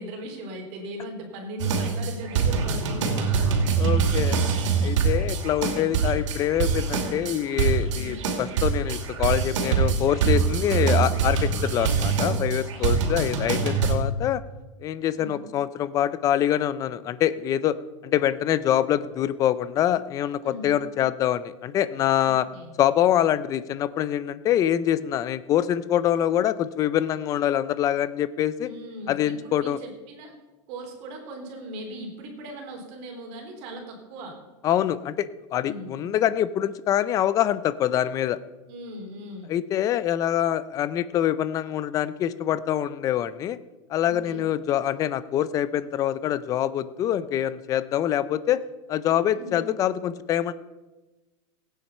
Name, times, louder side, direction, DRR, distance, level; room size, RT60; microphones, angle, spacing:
voice 1, 0.0-3.6 7.9-8.3 12.8-13.2 15.1-15.5 20.4-20.8 22.2-22.7 28.6-30.3 30.7-34.4 35.6-35.9 38.7-39.6 44.0-44.5 49.3-49.7, right 1 dB, 45° right, 2 dB, 3.5 m, -39 dB
sound 1, 1.6-13.9, right 5 dB, 75° right, 2.7 m, -24 dB
voice 2, 3.8-4.4 4.8-14.4 14.8-17.8 18.0-22.5 22.8-28.7 29.1-29.8 34.6-38.4 39.5-43.6 43.9-48.6 48.9-50.5, left 11 dB, 20° left, 15 dB, 0.5 m, -25 dB
16.5 x 9.2 x 5.5 m, 1.1 s
supercardioid pair, 165°, 16 cm